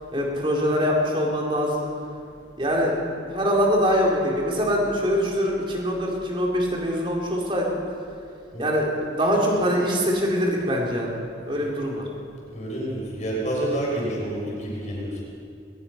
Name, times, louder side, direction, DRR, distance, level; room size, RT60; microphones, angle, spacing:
voice 1, 0.1-1.9 2.6-7.8 8.6-11.2 11.5-12.0, equal, 25° right, -2 dB, 3.9 m, -23 dB
voice 2, 12.5-15.2, right 1 dB, 40° left, -4 dB, 6.6 m, -28 dB
22.0 x 20.5 x 5.9 m, 2.4 s
head